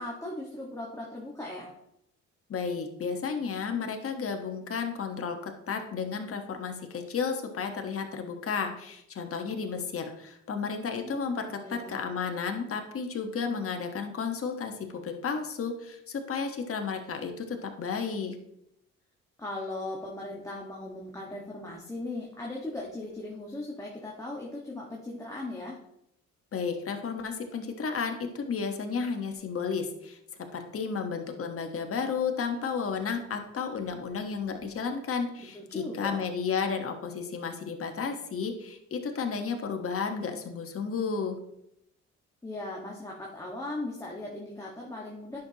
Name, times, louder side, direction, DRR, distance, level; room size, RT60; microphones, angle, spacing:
voice 1, 0.0-1.7 10.6-12.0 19.4-25.8 35.5-36.2 42.4-45.4, left 2 dB, 10° left, -3 dB, 1.5 m, -38 dB
voice 2, 2.5-18.3 26.5-30.2 30.5-41.4, left 5 dB, 50° left, 5 dB, 1.3 m, -32 dB
10.0 x 6.3 x 2.9 m, 0.79 s
cardioid pair, 90°, 30 cm